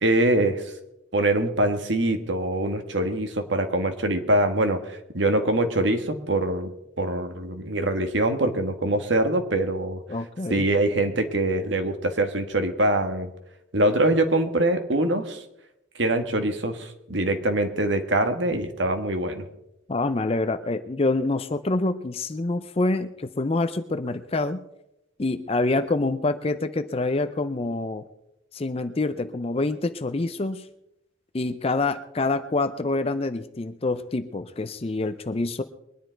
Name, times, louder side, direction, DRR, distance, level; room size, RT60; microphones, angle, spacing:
voice 1, 0.0-0.7 1.1-6.7 7.0-10.0 10.5-13.3 13.7-15.4 16.0-19.5, right 1 dB, 70° right, 7 dB, 1.5 m, -24 dB
voice 2, 10.1-10.7 19.9-24.7 25.2-28.0 28.5-30.7 31.3-35.6, left 2 dB, 30° left, 10 dB, 0.5 m, -26 dB
22.0 x 10.0 x 4.5 m, 0.85 s
head